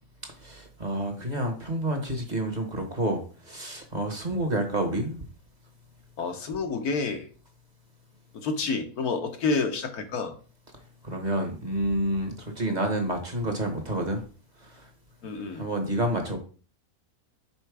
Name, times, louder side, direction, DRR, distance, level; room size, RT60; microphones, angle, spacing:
voice 1, 0.4-5.2 11.0-14.2 14.6-14.9 15.5-16.4, right 1 dB, 30° right, 4 dB, 1.2 m, -29 dB
voice 2, 6.2-7.2 8.3-10.3 15.2-15.7, left 4 dB, 70° left, 5 dB, 1.5 m, -29 dB
5.7 x 4.4 x 4.8 m, 0.39 s
omnidirectional pair, 1.7 m